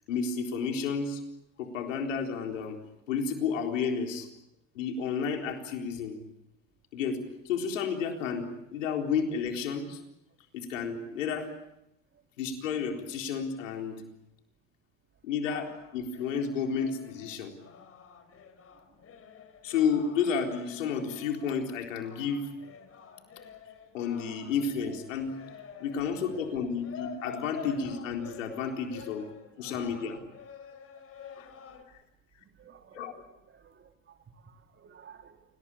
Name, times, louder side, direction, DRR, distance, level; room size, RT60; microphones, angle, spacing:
voice 1, 0.1-1.2 1.6-2.8 3.1-4.3 4.7-6.2 6.9-7.2 7.4-10.0 10.5-11.5 12.4-14.0 15.2-17.5 19.6-22.5 23.9-25.3 25.8-29.3 29.6-30.2 31.4-31.5 32.9-33.2, left 6 dB, 85° left, 3 dB, 4.1 m, -31 dB
sound 1, 15.4-31.8, left 6 dB, 40° left, 4.5 m, -48 dB
voice 2, 32.4-35.4, right 7 dB, 30° right, 5 dB, 3.2 m, -55 dB
28.0 x 19.5 x 8.5 m, 0.86 s
hypercardioid pair, 80°, 37 cm